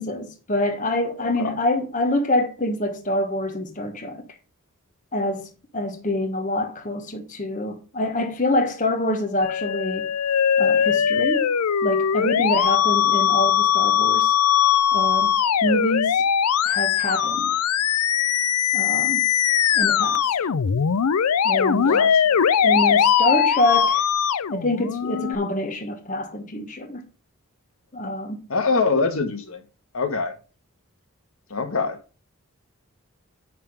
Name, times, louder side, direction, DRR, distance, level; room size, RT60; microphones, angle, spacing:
voice 1, 0.0-4.2 5.1-5.5 5.7-10.1 10.6-11.5 11.8-14.3 14.9-16.2 16.6-17.6 18.7-19.2 19.7-20.3 21.4-22.0 22.6-24.0 24.5-27.0 27.9-28.4, left 1 dB, 35° left, 1.2 m, -26 dB
voice 2, 1.2-1.6 21.8-22.4 28.5-29.6 29.9-30.3 31.5-32.0, left 4 dB, 70° left, 1.5 m, -24 dB
Musical instrument, 9.4-25.4, left 8 dB, 90° left, 0.5 m, -20 dB
10.0 x 3.7 x 6.5 m
head